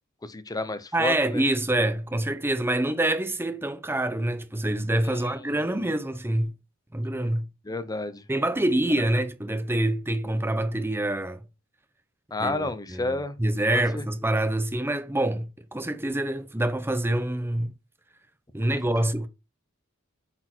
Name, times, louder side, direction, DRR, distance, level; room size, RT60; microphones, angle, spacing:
voice 1, 0.2-1.4 5.0-5.5 7.6-8.2 12.3-13.4 13.7-14.0, left 2 dB, 20° left, 0.7 m, -31 dB
voice 2, 0.9-6.5 6.9-7.4 8.3-11.4 12.4-17.7 18.5-19.3, right 1 dB, 10° right, 0.8 m, -26 dB
8.3 x 4.4 x 4.4 m
head